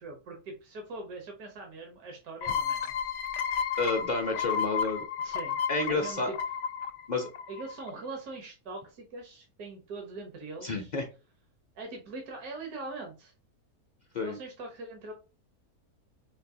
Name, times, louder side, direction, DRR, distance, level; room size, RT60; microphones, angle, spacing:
voice 1, 0.0-2.9 5.2-5.6 5.9-6.4 7.5-10.9 11.7-13.3 14.2-15.1, right 3 dB, 75° right, 2 dB, 1.5 m, -42 dB
sound 1, 2.4-7.9, left 7 dB, 70° left, 1.0 m, -32 dB
voice 2, 3.8-5.0 5.7-6.3 7.1-7.3 10.6-11.1 14.1-14.4, left 3 dB, 50° left, 2 dB, 0.5 m, -30 dB
5.1 x 2.7 x 2.7 m, 0.33 s
omnidirectional pair, 1.6 m